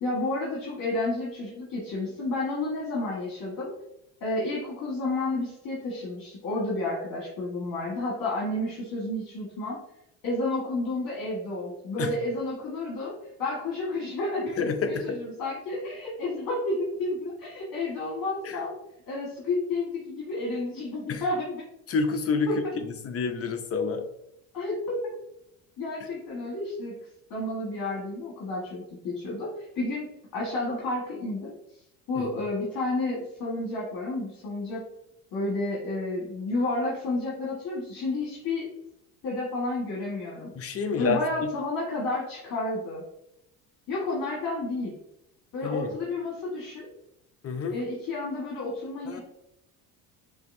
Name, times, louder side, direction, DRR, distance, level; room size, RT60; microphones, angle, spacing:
voice 1, 0.0-3.7 4.2-9.8 10.2-13.1 13.4-18.7 19.1-21.6 22.5-22.6 24.5-25.0 25.8-27.0 27.3-31.5 32.1-34.8 35.3-38.7 39.2-40.5 41.0-43.0 43.9-44.9 45.5-46.9 47.7-49.2, left 2 dB, 50° left, -4 dB, 1.5 m, -31 dB
voice 2, 14.6-15.1 18.4-18.6 21.1-21.2 21.9-22.5 22.8-24.1 32.2-32.3 40.6-41.2 45.6-45.9 47.4-47.8 49.1-49.2, left 5 dB, 35° left, 7 dB, 0.6 m, -28 dB
5.7 x 2.7 x 2.6 m, 0.79 s
supercardioid pair, 95°, 42 cm